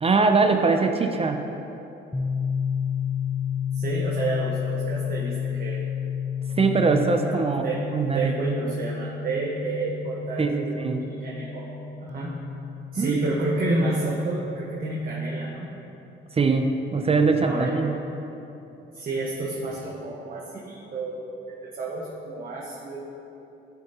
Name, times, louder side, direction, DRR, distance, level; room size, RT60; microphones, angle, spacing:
voice 1, 0.0-1.5 6.6-7.7 7.9-8.3 10.4-11.0 13.0-13.2 16.3-18.0, right 4 dB, 30° right, 5 dB, 0.5 m, -22 dB
sound 1, 2.1-15.7, left 7 dB, 15° left, 0.6 m, -31 dB
voice 2, 3.7-5.8 7.2-7.4 7.6-7.8 8.1-11.7 12.0-12.4 12.9-15.7 17.4-17.8 18.9-21.2 21.7-23.0, right 2 dB, 45° right, -5 dB, 1.4 m, -30 dB
13.5 x 6.5 x 3.0 m, 2.9 s
cardioid pair, 90°, 20 cm